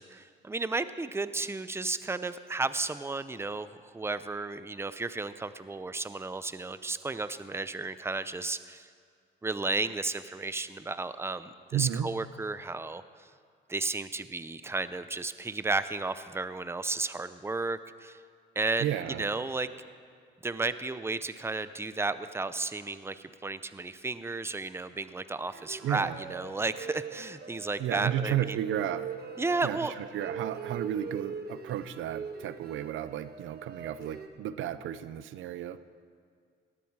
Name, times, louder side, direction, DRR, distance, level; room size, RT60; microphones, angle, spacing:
voice 1, 0.0-8.9 9.4-13.3 13.7-18.2 18.6-19.7 20.4-28.6 29.4-29.9, right 3 dB, 10° right, 13 dB, 0.6 m, -33 dB
voice 2, 11.7-12.1 18.8-19.3 25.8-26.2 27.8-29.1 29.6-35.8, right 11 dB, 80° right, 14 dB, 0.7 m, -33 dB
sound 1, 25.5-34.3, right 6 dB, 50° right, 1.4 m, -42 dB
18.5 x 13.0 x 4.8 m, 2.1 s
cardioid pair, 90°, 20 cm